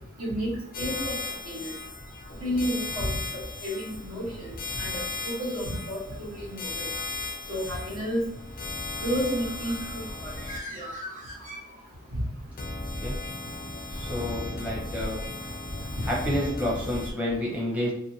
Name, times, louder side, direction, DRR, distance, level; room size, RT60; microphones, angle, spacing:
voice 1, 0.2-0.5 0.8-1.2 1.5-1.7 2.4-3.2 3.6-5.0 5.3-6.9 7.5-8.2 9.0-10.3 10.7-10.9 15.9-16.0, equal, 80° right, -4 dB, 1.1 m, -31 dB
sound 1, 0.7-10.6 12.6-17.1, left 3 dB, 40° left, 0.4 m, -36 dB
Bird, 9.2-12.2, equal, 40° right, 0.8 m, -42 dB
voice 2, 13.9-15.2 16.0-17.9, left 1 dB, 5° right, -5 dB, 0.6 m, -29 dB
2.6 x 2.5 x 2.7 m, 0.79 s
head